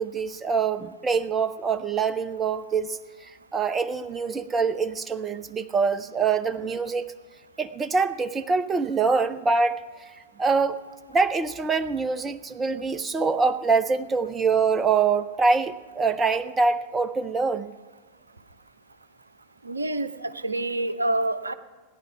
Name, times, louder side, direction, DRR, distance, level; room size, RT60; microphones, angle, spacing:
voice 1, 0.0-3.0 3.5-7.1 7.6-9.8 10.4-10.8 11.1-17.7, right 4 dB, 20° right, 12 dB, 0.6 m, -24 dB
voice 2, 19.6-21.5, right 2 dB, 80° right, 11 dB, 0.7 m, -27 dB
17.5 x 10.5 x 5.8 m, 1.4 s
figure-of-eight pair, 90°, 0 cm